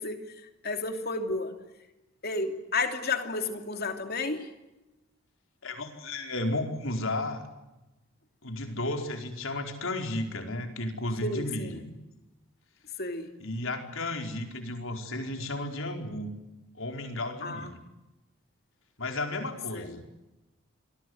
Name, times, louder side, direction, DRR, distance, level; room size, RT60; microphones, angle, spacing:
voice 1, 0.0-1.6 2.2-4.5 11.2-11.8 13.0-13.3 17.4-17.7 19.7-20.0, left 3 dB, 45° left, 6 dB, 3.0 m, -32 dB
voice 2, 5.6-7.4 8.4-11.9 13.4-16.3 16.8-17.8 19.0-20.0, left 2 dB, 65° left, 4 dB, 4.7 m, -33 dB
28.0 x 23.0 x 8.1 m, 1.0 s
head